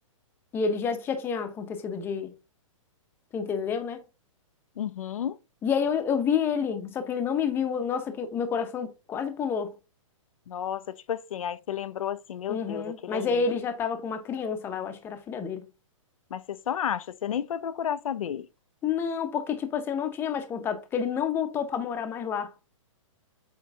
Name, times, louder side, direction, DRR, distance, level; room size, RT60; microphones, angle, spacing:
voice 1, 0.5-2.4 3.3-4.0 5.6-9.7 12.5-15.7 18.8-22.5, left 6 dB, 15° left, 0.7 m, -29 dB
voice 2, 4.8-5.4 10.5-13.4 16.3-18.5, left 9 dB, 85° left, 0.6 m, -32 dB
8.1 x 3.2 x 3.7 m
hypercardioid pair, 160°, 17 cm